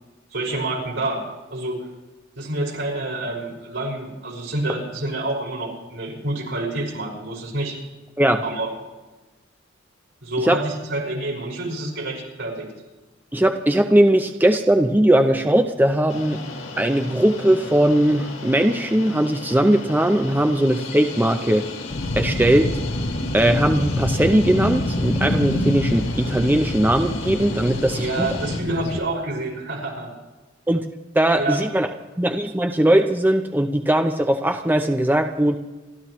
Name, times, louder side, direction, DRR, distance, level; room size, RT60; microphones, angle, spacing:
voice 1, 0.3-1.2 1.5-1.8 2.4-7.8 8.4-8.7 10.2-12.7 27.9-30.1 31.4-31.6, right 2 dB, 75° right, -1 dB, 5.4 m, -28 dB
voice 2, 13.3-16.4 16.8-21.7 22.1-22.7 23.3-28.3 30.7-30.8 31.1-31.9 32.2-35.6, right 1 dB, 10° right, 5 dB, 0.6 m, -19 dB
sound 1, 16.1-28.6, left 3 dB, 85° left, 1.8 m, -35 dB
sound 2, 21.9-29.0, left 1 dB, 65° left, 1.3 m, -26 dB
28.5 x 13.0 x 3.1 m, 1.2 s
head